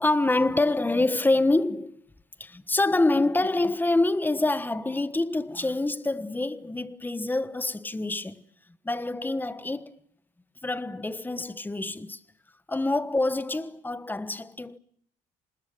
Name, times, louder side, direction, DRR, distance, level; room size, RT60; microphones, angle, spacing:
voice 1, 0.0-2.0 2.4-8.4 8.8-9.9 10.6-12.2 12.7-14.8, left 2 dB, 10° left, 1.2 m, -26 dB
26.0 x 20.5 x 9.3 m
cardioid pair, 110°, 17 cm